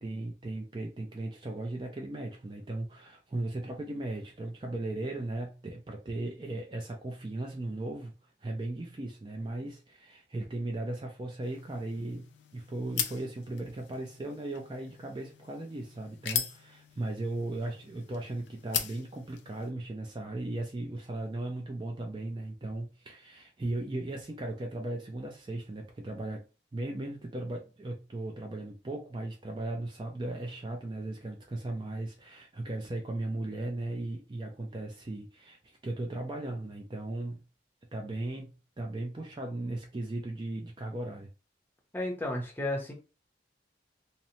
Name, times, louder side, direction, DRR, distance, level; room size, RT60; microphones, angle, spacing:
voice 1, 0.0-8.1 8.4-12.3 12.5-26.4 26.7-37.4 37.9-41.3, right 2 dB, 25° right, 0.4 m, -37 dB
sound 1, 11.4-19.7, left 9 dB, 85° left, 0.4 m, -39 dB
voice 2, 41.9-42.9, left 1 dB, 10° left, 0.6 m, -32 dB
2.8 x 2.0 x 2.7 m
head